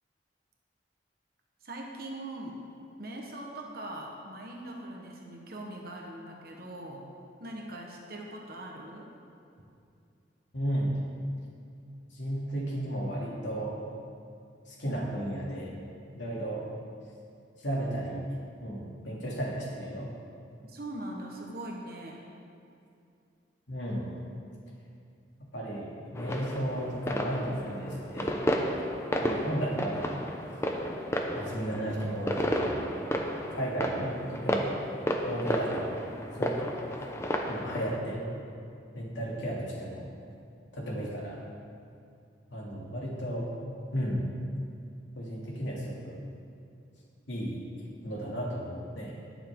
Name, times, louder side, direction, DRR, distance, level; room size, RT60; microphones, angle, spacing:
voice 1, 1.6-2.6 3.0-7.0 7.4-9.1 20.7-22.2, right 1 dB, 50° right, 0 dB, 1.3 m, -41 dB
voice 2, 10.5-10.9 12.1-13.8 14.7-15.7 16.1-16.6 17.6-18.2 18.6-20.1 23.7-24.1 25.5-28.3 29.2-30.2 31.3-32.8 33.5-34.7 35.3-35.9 36.3-36.7 37.5-38.2 38.9-40.1 40.7-41.4 42.5-43.5 43.9-44.3 45.1-46.1 47.3-47.5 48.0-49.1, right 1 dB, 80° left, -4 dB, 2.7 m, -34 dB
sound 1, 26.2-38.0, equal, 15° left, 0.7 m, -32 dB
20.5 x 7.2 x 3.8 m, 2.5 s
head